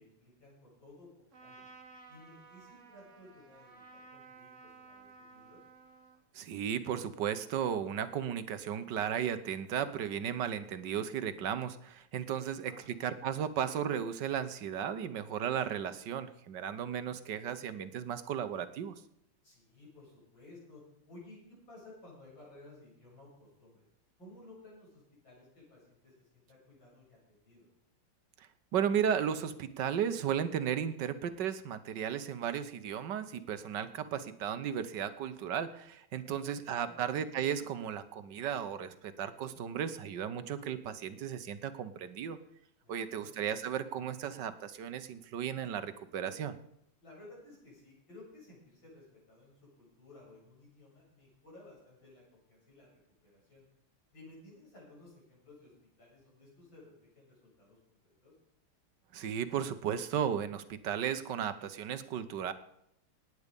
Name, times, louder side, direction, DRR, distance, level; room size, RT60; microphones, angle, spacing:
voice 1, 0.0-1.7 2.1-5.6 12.6-12.9 19.4-23.9 24.2-27.7 36.2-37.0 42.8-43.3 47.0-52.9 53.2-53.6 54.1-55.7 56.0-58.3, left 2 dB, 60° left, -5 dB, 8.9 m, -56 dB
Trumpet, 1.3-6.2, right 4 dB, 35° right, 1.7 m, -55 dB
voice 2, 6.3-12.7 13.0-18.9 28.7-42.4 42.9-46.5 59.1-62.5, right 8 dB, 60° right, 12 dB, 1.4 m, -35 dB
18.0 x 9.6 x 5.3 m, 0.75 s
omnidirectional pair, 2.4 m